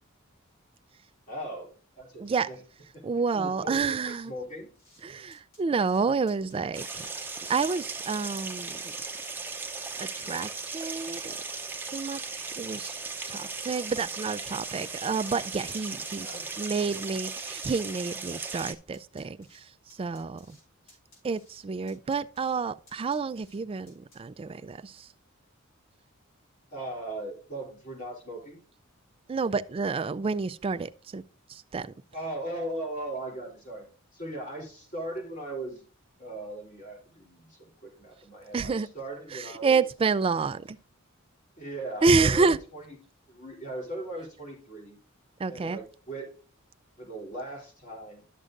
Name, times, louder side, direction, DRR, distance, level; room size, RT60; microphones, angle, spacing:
voice 1, 1.3-2.6 3.3-4.7 16.2-16.6 16.9-17.0 26.7-28.6 32.1-33.8 34.1-35.8 36.2-39.8 41.6-42.8 43.3-45.0 45.5-46.3 47.0-48.2, right 1 dB, 40° left, 3.2 m, -38 dB
voice 2, 3.0-4.3 5.0-7.1 7.5-8.9 10.0-11.4 11.9-13.0 13.3-19.6 20.0-20.6 21.2-25.1 29.3-31.2 31.5-31.9 38.5-38.9 39.3-40.8 42.0-42.6 45.4-45.8, right 4 dB, 25° right, 0.3 m, -29 dB
sound 1, 4.8-5.0 5.3-6.0 6.3-7.0 7.3-8.0 8.2-9.0 9.2-9.9 10.2-10.9 11.2-12.9 13.1-14.8 15.0-15.8 16.0-16.7 17.0-17.7 18.0-18.7 18.9-19.6 19.9-20.6 20.9-21.6 21.9-22.6 22.9-23.6 23.9-24.2, left 1 dB, 75° left, 4.5 m, -58 dB
sound 2, 6.7-18.7, right 4 dB, 10° right, 0.7 m, -37 dB
12.0 x 6.4 x 2.4 m
head